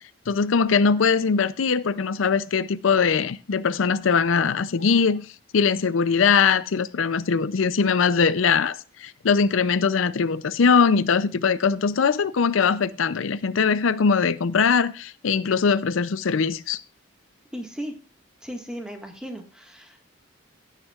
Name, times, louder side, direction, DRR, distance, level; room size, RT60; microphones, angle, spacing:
voice 1, 0.3-5.3 5.5-16.8, left 5 dB, 85° left, 0.5 m, -21 dB
voice 2, 17.5-17.9 18.4-20.1, equal, 5° right, 1.7 m, -36 dB
16.5 x 9.1 x 2.4 m
head